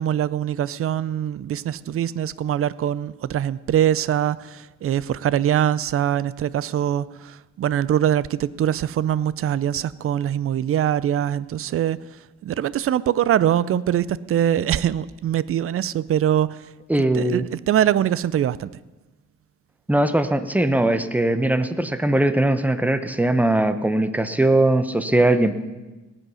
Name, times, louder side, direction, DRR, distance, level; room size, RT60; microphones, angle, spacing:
voice 1, 0.0-12.0 12.4-16.6 17.1-18.7, right 10 dB, 50° right, 20 dB, 0.5 m, -23 dB
voice 2, 16.9-17.4 19.9-25.6, right 1 dB, 5° right, 11 dB, 0.8 m, -20 dB
18.5 x 8.2 x 5.6 m, 1.2 s
cardioid pair, 90°, 30 cm